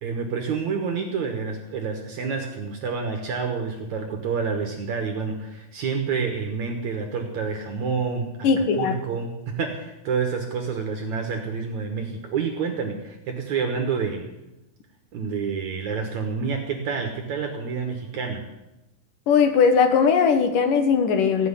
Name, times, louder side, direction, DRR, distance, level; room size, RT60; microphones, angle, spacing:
voice 1, 0.0-14.3 15.1-18.4, right 5 dB, 60° right, 4 dB, 2.0 m, -28 dB
voice 2, 8.4-8.9 19.3-21.5, left 6 dB, 65° left, 7 dB, 2.5 m, -19 dB
16.5 x 6.3 x 9.8 m, 0.96 s
omnidirectional pair, 4.7 m